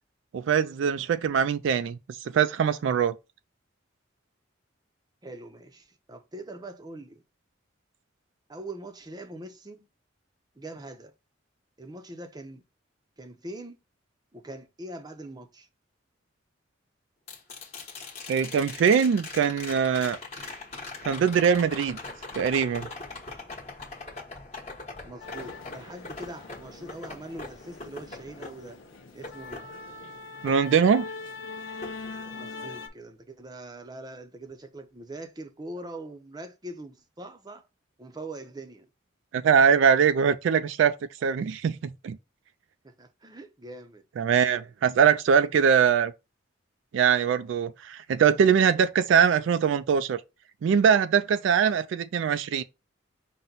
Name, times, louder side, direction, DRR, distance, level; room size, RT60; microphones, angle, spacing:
voice 1, 0.3-3.1 18.3-20.5 21.0-22.0 22.4-22.9 30.4-31.1 39.3-40.9 41.2-42.2 44.2-46.1 46.9-50.2 50.6-52.6, right 7 dB, 75° right, 0.3 m, -22 dB
voice 2, 5.2-7.2 8.5-9.9 10.5-11.1 11.8-12.6 13.2-13.8 14.3-15.7 25.0-28.8 29.1-29.6 32.3-37.7 38.0-38.9 42.8-44.0, right 1 dB, 20° right, 0.6 m, -42 dB
sound 1, 17.3-31.4 31.8-32.8 35.1-35.2, left 3 dB, 35° left, 1.1 m, -42 dB
sound 2, 25.2-32.9, left 4 dB, 85° left, 0.7 m, -42 dB
5.7 x 2.1 x 3.8 m
head